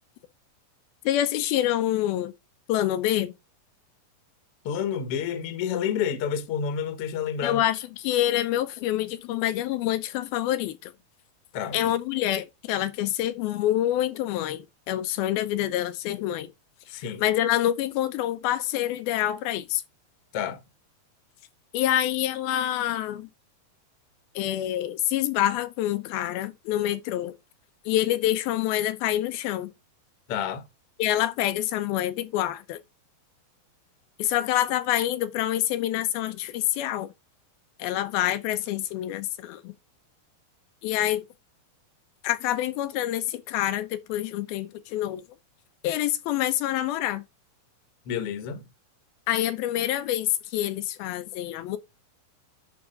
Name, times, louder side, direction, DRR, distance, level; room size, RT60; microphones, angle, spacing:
voice 1, 1.1-2.3 2.7-3.3 7.4-10.9 11.7-16.5 17.2-19.8 21.7-23.3 24.4-27.3 27.9-29.7 31.0-32.8 34.2-37.1 37.8-39.7 40.8-41.3 42.2-45.2 45.8-47.2 49.3-51.8, left 13 dB, 85° left, 2.6 m, -26 dB
voice 2, 4.6-7.6 11.5-11.9 16.9-17.2 20.3-20.6 30.3-30.6 48.1-48.7, left 8 dB, 55° left, 1.7 m, -29 dB
11.0 x 4.8 x 3.8 m
omnidirectional pair, 4.3 m